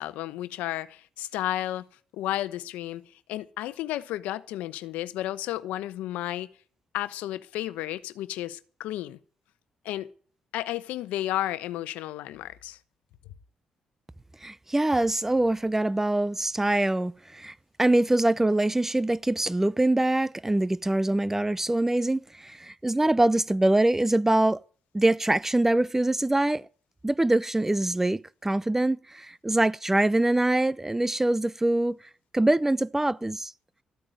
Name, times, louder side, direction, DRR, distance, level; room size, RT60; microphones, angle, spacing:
voice 1, 0.0-1.9 2.1-3.0 3.3-6.5 6.9-9.2 9.8-10.1 10.5-12.8, left 14 dB, 90° left, 0.9 m, -32 dB
voice 2, 14.4-24.6 24.9-26.7 27.0-32.0 32.3-33.5, right 1 dB, 15° right, 0.7 m, -24 dB
14.0 x 9.0 x 8.9 m
supercardioid pair, 60°, 2 cm